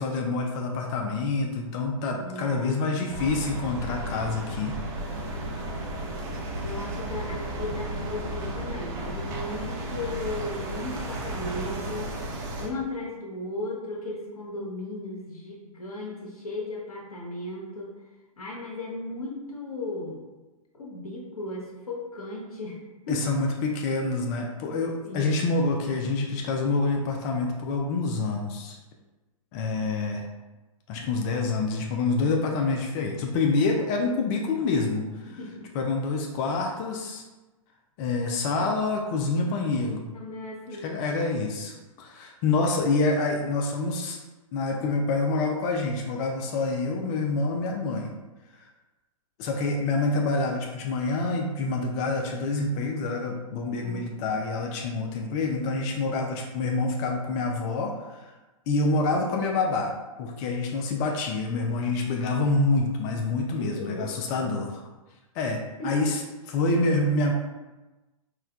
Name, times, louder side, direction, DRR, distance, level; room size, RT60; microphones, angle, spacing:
voice 1, 0.0-4.8 5.1-5.2 23.1-28.8 29.5-30.2 30.9-35.0 35.7-37.2 38.0-40.1 40.8-44.2 44.5-48.1 49.4-58.3 58.7-59.9 60.2-64.8 65.4-66.2 66.5-67.3, left 3 dB, 30° left, 1 dB, 0.3 m, -27 dB
voice 2, 2.1-3.0 6.6-12.1 12.6-17.9 18.4-20.2 20.7-22.8 23.1-23.2 25.0-25.5 35.3-35.7 40.1-40.9 53.6-54.1 63.5-64.1 65.8-66.1, left 2 dB, 85° left, -2 dB, 0.9 m, -36 dB
sound 1, 3.1-12.7, right 1 dB, 35° right, 0.7 m, -34 dB
4.3 x 2.1 x 2.3 m, 1.1 s
hypercardioid pair, 120°, 18 cm